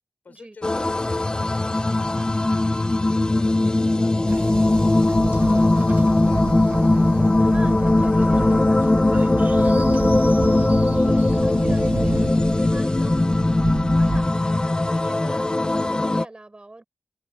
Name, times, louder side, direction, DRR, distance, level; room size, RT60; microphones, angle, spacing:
voice 1, 0.2-6.5, left 5 dB, 80° left, 5.2 m, -48 dB
sound 1, 0.6-16.2, left 2 dB, 30° left, 0.9 m, -19 dB
Train, 4.3-14.3, right 4 dB, 75° right, 1.6 m, -31 dB
voice 2, 7.4-13.6 14.0-16.8, right 2 dB, 35° right, 6.4 m, -44 dB
cardioid pair, 40°, 3 cm